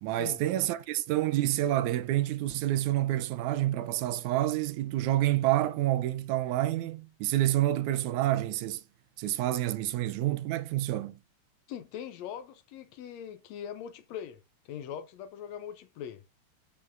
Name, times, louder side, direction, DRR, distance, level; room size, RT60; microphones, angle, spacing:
voice 1, 0.0-8.8 9.2-11.2, right 14 dB, 85° right, 2.1 m, -28 dB
voice 2, 11.7-14.4 14.7-16.2, left 9 dB, 75° left, 1.8 m, -41 dB
13.0 x 5.1 x 2.6 m
omnidirectional pair, 3.3 m